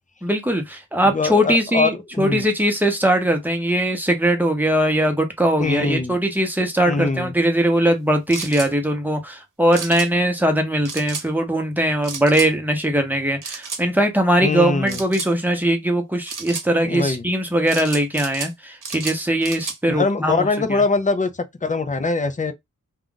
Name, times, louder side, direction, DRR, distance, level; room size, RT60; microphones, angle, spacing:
voice 1, 0.2-20.8, right 1 dB, 5° right, 0.9 m, -20 dB
voice 2, 1.1-2.5 5.6-6.1 6.9-7.3 14.4-15.0 16.8-17.2 19.9-21.3 21.6-22.5, left 3 dB, 25° left, 0.5 m, -22 dB
sound 1, 8.3-8.7 9.7-10.1 10.9-11.3 12.0-12.5 13.4-13.8 14.9-15.3 16.3-16.7 17.7-18.5 18.8-19.8, right 5 dB, 70° right, 0.9 m, -32 dB
2.5 x 2.3 x 3.7 m
wide cardioid pair, 70°, 33 cm